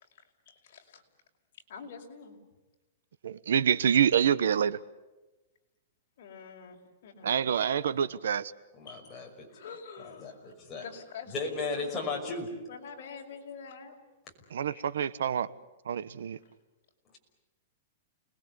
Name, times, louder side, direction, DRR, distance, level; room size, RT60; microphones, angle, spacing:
voice 1, 0.1-1.0 1.7-2.4 6.2-7.3 8.9-9.0 9.5-10.5 10.8-12.0 12.7-14.0, left 6 dB, 55° left, 1 dB, 5.4 m, -46 dB
voice 2, 3.2-4.8 7.2-8.5 14.5-15.5 15.8-16.4, right 8 dB, 90° right, 17 dB, 1.2 m, -26 dB
voice 3, 8.8-9.5 10.2-10.8 11.3-12.5 14.7-14.8, left 4 dB, 15° left, -1 dB, 5.7 m, -35 dB
29.5 x 21.0 x 8.3 m, 1.1 s
supercardioid pair, 165°, 0 cm